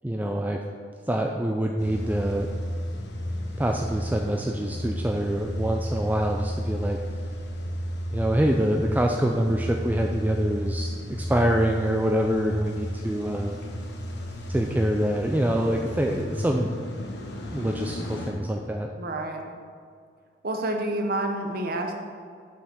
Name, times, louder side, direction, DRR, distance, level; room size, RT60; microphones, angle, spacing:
voice 1, 0.0-0.6 1.1-2.5 3.6-7.0 8.1-13.5 14.5-16.7 17.5-18.9, right 1 dB, 10° right, 2 dB, 0.4 m, -25 dB
Car / Engine starting / Idling, 1.8-18.3, equal, 65° left, 1.2 m, -33 dB
voice 2, 19.0-19.4 20.4-21.9, right 1 dB, 55° right, 4 dB, 1.0 m, -28 dB
6.9 x 5.7 x 6.2 m, 2.2 s
head